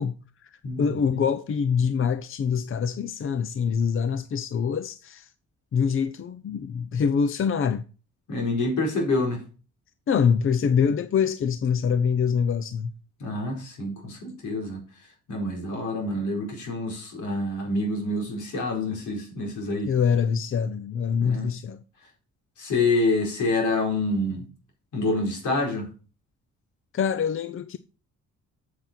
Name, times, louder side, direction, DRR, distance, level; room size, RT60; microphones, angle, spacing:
voice 1, 0.0-0.5 0.8-5.3 5.7-7.8 10.1-13.0 19.8-21.8 26.9-27.8, left 6 dB, 45° left, 0.7 m, -25 dB
voice 2, 0.6-1.2 8.3-9.4 13.2-14.8 15.3-19.9 21.2-21.5 22.6-24.5 24.9-25.9, left 2 dB, 75° left, 4.5 m, -27 dB
7.9 x 7.8 x 4.4 m
cardioid pair, 90°, 30 cm